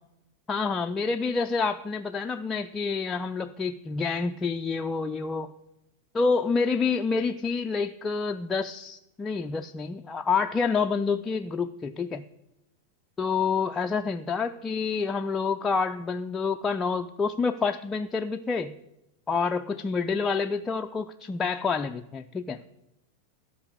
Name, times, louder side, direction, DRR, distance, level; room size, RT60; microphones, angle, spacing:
voice 1, 0.5-5.5 6.1-12.2 13.2-18.8 19.3-22.6, left 5 dB, 15° left, 5 dB, 0.3 m, -28 dB
13.0 x 5.3 x 6.3 m, 0.89 s
figure-of-eight pair, 90°, 0 cm